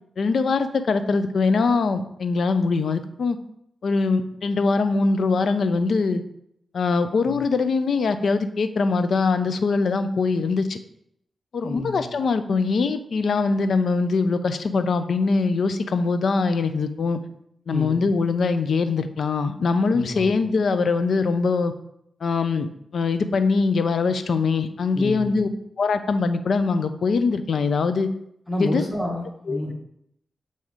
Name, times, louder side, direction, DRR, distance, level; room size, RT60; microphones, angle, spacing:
voice 1, 0.2-3.4 3.8-6.2 6.7-10.8 11.5-17.2 17.7-21.7 22.2-25.5 25.8-28.1 28.6-28.8 29.5-29.6, left 4 dB, 70° left, 10 dB, 0.5 m, -22 dB
voice 2, 11.6-12.1 17.7-18.1 19.9-20.3 24.9-25.4 28.5-29.7, left 1 dB, ahead, -2 dB, 1.5 m, -29 dB
7.2 x 2.8 x 4.9 m, 0.74 s
cardioid pair, 50°, 0 cm